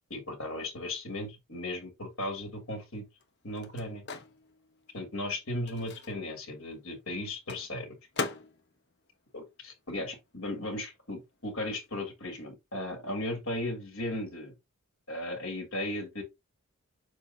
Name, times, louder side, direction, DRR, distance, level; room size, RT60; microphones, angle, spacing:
voice 1, 0.1-3.0 3.4-4.0 4.9-7.9 9.3-14.5 15.1-16.2, left 1 dB, 70° left, 3.1 m, -36 dB
Microwave oven, 2.4-10.3 10.6-12.5, left 3 dB, 50° left, 1.0 m, -43 dB
7.0 x 4.7 x 2.8 m
head